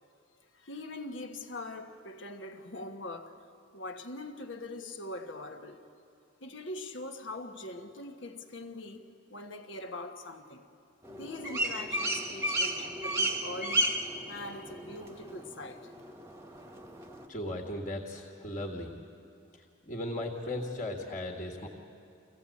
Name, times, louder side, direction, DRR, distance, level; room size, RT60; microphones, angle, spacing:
voice 1, 0.5-3.4 3.7-5.8 6.4-10.7 11.1-13.9 14.3-15.9, left 2 dB, 65° left, 1.3 m, -42 dB
sound 1, 11.0-17.3, right 1 dB, 15° right, 1.2 m, -34 dB
voice 2, 17.3-18.9 19.5-21.7, left 1 dB, 40° left, 1.8 m, -37 dB
25.0 x 16.5 x 8.5 m
head